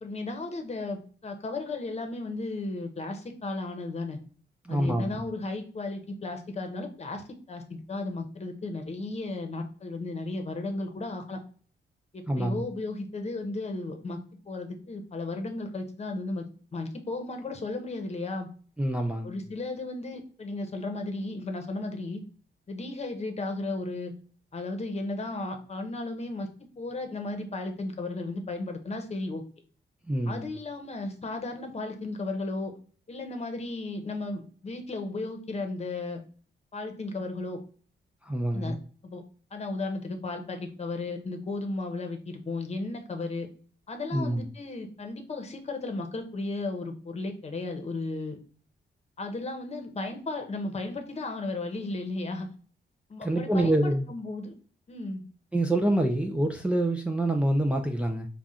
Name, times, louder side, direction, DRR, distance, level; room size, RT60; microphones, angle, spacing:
voice 1, 0.0-4.2 4.7-11.4 12.1-14.2 14.5-16.4 16.7-18.5 19.2-22.2 22.7-24.1 24.5-26.5 26.8-29.4 30.3-32.7 33.1-36.2 36.7-37.6 38.5-38.8 39.0-39.2 39.5-43.5 43.9-48.4 49.2-52.5 53.1-54.5 54.9-55.2, left 2 dB, 35° left, 5 dB, 0.9 m, -34 dB
voice 2, 4.6-5.2 12.3-12.6 18.8-19.4 30.1-30.5 38.2-38.8 44.1-44.5 53.2-54.1 55.5-58.3, right 1 dB, 5° right, 2 dB, 0.4 m, -26 dB
5.6 x 2.4 x 3.6 m, 0.42 s
wide cardioid pair, 135°, 19 cm